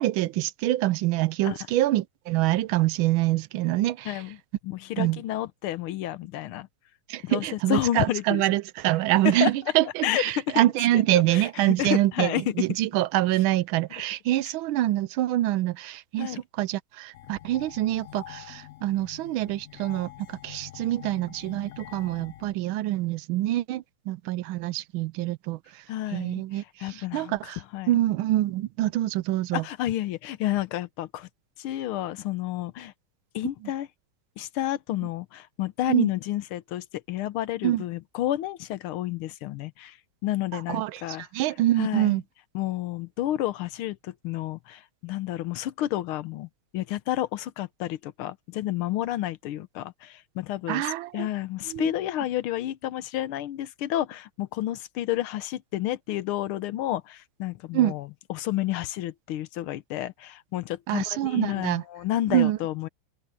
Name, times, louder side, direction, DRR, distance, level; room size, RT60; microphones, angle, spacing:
voice 1, 0.0-4.2 5.0-5.2 7.1-25.6 26.1-26.6 26.9-27.6 27.9-29.6 35.9-36.1 37.6-37.8 40.7-42.2 50.7-51.3 51.7-51.9 57.7-57.9 60.9-61.8 62.3-62.6, right 15 dB, 80° right, 1.3 m, -25 dB
voice 2, 4.0-4.4 4.6-6.7 7.2-8.4 9.2-9.5 9.8-10.6 10.9-11.0 11.3-12.7 16.2-16.4 25.9-28.0 29.5-31.3 31.6-32.9 33.3-33.9 34.4-40.0 40.2-41.3 41.8-42.2 42.5-46.5 46.7-50.9 51.1-62.9, left 13 dB, 85° left, 1.7 m, -30 dB
sound 1, 17.1-22.5, left 14 dB, 70° left, 0.8 m, -45 dB
open air
omnidirectional pair, 2.3 m